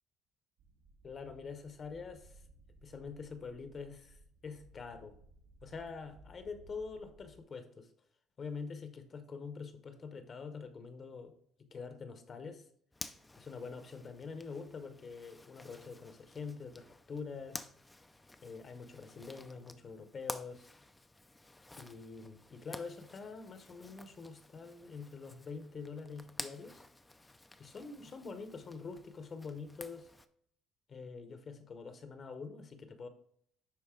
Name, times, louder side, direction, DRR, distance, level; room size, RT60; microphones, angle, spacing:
sound 1, 0.6-7.4, right 2 dB, 65° right, 1.3 m, -60 dB
voice 1, 1.0-2.4 2.8-5.2 5.6-7.9 8.4-11.3 11.6-12.6 13.4-17.7 18.4-20.7 21.8-26.8 27.6-30.1 30.9-33.1, left 5 dB, 30° left, 0.8 m, -45 dB
Zipper (clothing), 12.9-30.3, left 2 dB, 10° left, 0.4 m, -51 dB
10.5 x 4.0 x 3.7 m
cardioid pair, 155°, 0 cm